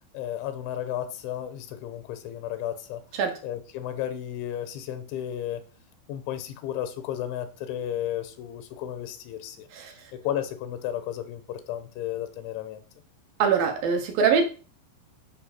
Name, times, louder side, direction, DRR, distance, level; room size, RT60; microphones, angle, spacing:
voice 1, 0.1-3.0 3.4-5.6 6.1-9.7 10.1-12.8, left 11 dB, 85° left, 3.1 m, -33 dB
voice 2, 9.7-10.1 13.4-14.5, right 6 dB, 65° right, 2.5 m, -23 dB
11.5 x 5.7 x 4.3 m
omnidirectional pair, 5.4 m